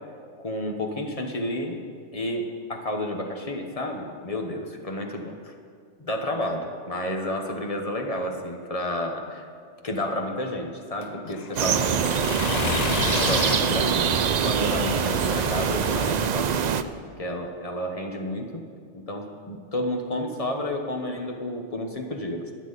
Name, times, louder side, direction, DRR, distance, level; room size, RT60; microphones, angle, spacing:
voice 1, 0.4-1.8 2.1-5.3 6.0-9.4 9.8-12.3 12.6-14.1 14.4-16.7 17.2-18.6 18.9-22.4, left 1 dB, 30° left, 2 dB, 1.2 m, -31 dB
Accelerating revving vroom, 11.0-16.3, left 8 dB, 85° left, 0.3 m, -32 dB
sound 1, 11.6-16.8, right 8 dB, 70° right, 0.4 m, -24 dB
22.0 x 7.3 x 4.1 m, 2.1 s
omnidirectional pair, 1.3 m